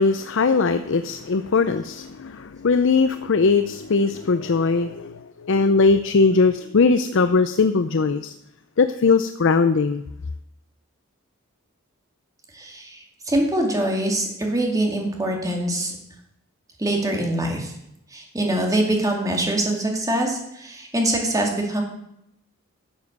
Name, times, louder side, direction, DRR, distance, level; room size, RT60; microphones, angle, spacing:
voice 1, 0.0-8.3 8.8-10.1, left 4 dB, 60° left, 10 dB, 0.5 m, -20 dB
voice 2, 12.5-15.9 16.8-17.7 18.1-21.8, right 1 dB, 15° right, 1 dB, 2.2 m, -24 dB
11.5 x 7.3 x 6.6 m, 0.81 s
head